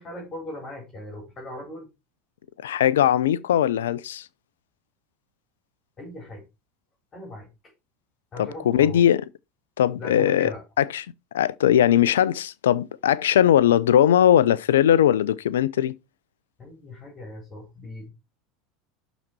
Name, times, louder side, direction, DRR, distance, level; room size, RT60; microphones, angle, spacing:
voice 1, 0.0-1.9 6.0-6.4 7.1-7.5 8.3-9.0 10.0-10.6 16.6-18.1, left 1 dB, 25° left, 4.0 m, -38 dB
voice 2, 2.6-4.2 8.4-9.2 9.8-10.5 10.8-11.1 11.3-15.9, left 10 dB, 70° left, 0.5 m, -20 dB
11.5 x 4.0 x 4.5 m
figure-of-eight pair, 75°, 0 cm